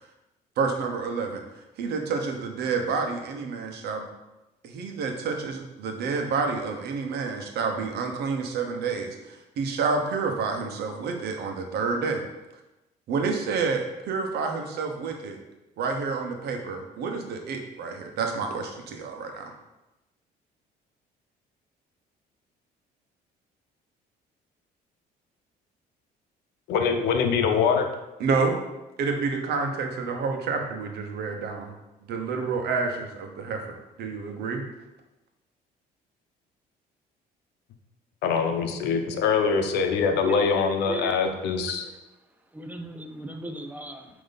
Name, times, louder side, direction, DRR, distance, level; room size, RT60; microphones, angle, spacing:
voice 1, 0.6-1.4 1.8-4.1 4.6-12.2 13.1-15.4 15.8-19.5 28.2-28.6 29.0-34.6, right 4 dB, 70° right, 3 dB, 1.1 m, -29 dB
voice 2, 26.7-27.9 38.2-41.8, left 5 dB, 85° left, 5 dB, 0.8 m, -23 dB
voice 3, 40.9-41.3 41.5-42.0 42.5-44.1, right 1 dB, 10° right, 5 dB, 0.7 m, -37 dB
8.9 x 3.1 x 4.0 m, 0.99 s
cardioid pair, 110°, 17 cm